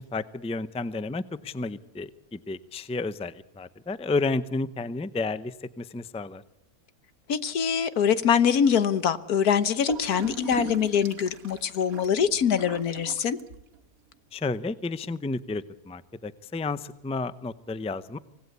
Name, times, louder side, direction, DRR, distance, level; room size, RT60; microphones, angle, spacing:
voice 1, 0.0-6.4 14.3-18.2, left 3 dB, 10° left, 15 dB, 0.4 m, -31 dB
voice 2, 7.3-13.4, left 7 dB, 85° left, 14 dB, 1.6 m, -24 dB
Gurgling / Toilet flush, 9.9-13.9, right 7 dB, 70° right, 1.7 m, -40 dB
25.5 x 18.0 x 8.4 m, 0.86 s
omnidirectional pair, 1.6 m